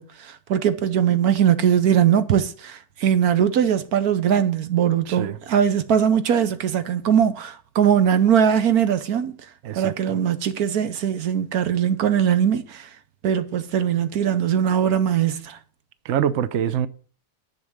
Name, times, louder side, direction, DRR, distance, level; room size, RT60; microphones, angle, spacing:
voice 1, 0.0-9.4 9.7-12.9 13.2-15.6, right 8 dB, 80° right, 1.5 m, -20 dB
voice 2, 5.1-5.4 9.6-10.2 16.0-16.9, right 9 dB, 60° right, 0.9 m, -25 dB
11.0 x 5.9 x 8.0 m
omnidirectional pair, 1.6 m